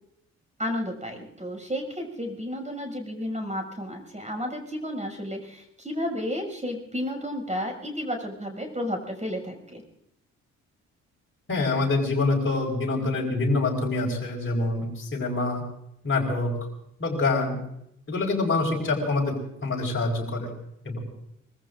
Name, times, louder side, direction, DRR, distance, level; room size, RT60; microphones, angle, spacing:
voice 1, 0.6-9.8, equal, 20° right, 4 dB, 6.5 m, -32 dB
voice 2, 11.5-15.6 16.0-16.5 17.0-17.6 18.1-19.3 19.6-20.5 20.8-21.0, left 3 dB, 35° left, -2 dB, 4.5 m, -25 dB
24.5 x 22.0 x 2.6 m, 0.77 s
hypercardioid pair, 40°, 38 cm